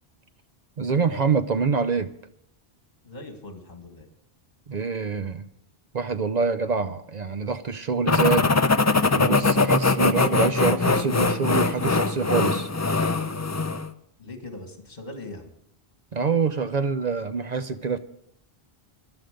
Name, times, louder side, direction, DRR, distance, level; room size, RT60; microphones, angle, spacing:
voice 1, 0.8-2.1 4.7-5.5 5.9-8.6 9.2-12.7 16.1-18.0, right 5 dB, 50° right, 11 dB, 0.6 m, -25 dB
voice 2, 3.0-4.1 14.2-15.5, left 2 dB, 45° left, 4 dB, 2.2 m, -40 dB
sound 1, 8.1-13.9, left 3 dB, 25° left, 0.3 m, -22 dB
14.5 x 11.5 x 5.2 m, 0.74 s
omnidirectional pair, 1.1 m